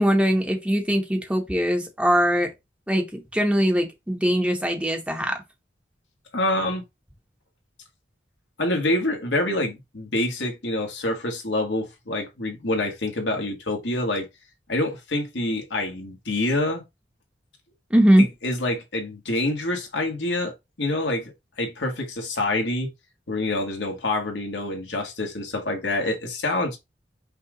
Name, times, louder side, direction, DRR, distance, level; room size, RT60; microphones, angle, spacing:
voice 1, 0.0-2.5 2.9-5.4 17.9-18.2, equal, 5° right, 0.9 m, -21 dB
voice 2, 6.3-6.8 8.6-14.3 14.7-16.8 18.2-21.3 21.6-22.9 23.3-26.8, left 2 dB, 85° left, 1.5 m, -26 dB
5.5 x 2.4 x 3.7 m
head